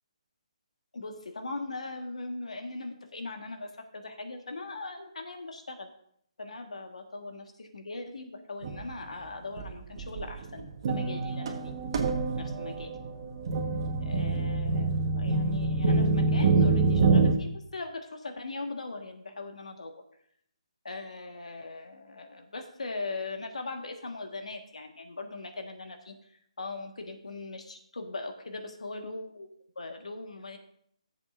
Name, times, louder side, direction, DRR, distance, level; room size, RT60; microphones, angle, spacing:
voice 1, 0.9-5.9 6.4-11.5 12.4-12.9 14.0-19.9 20.8-26.1 26.6-29.5 29.7-30.6, left 3 dB, 85° left, 5 dB, 1.5 m, -40 dB
sound 1, 8.6-8.9 9.6-9.7 10.0-17.3, right 3 dB, 45° right, 1.3 m, -26 dB
14.5 x 7.3 x 2.6 m, 0.69 s
hypercardioid pair, 160°, 4 cm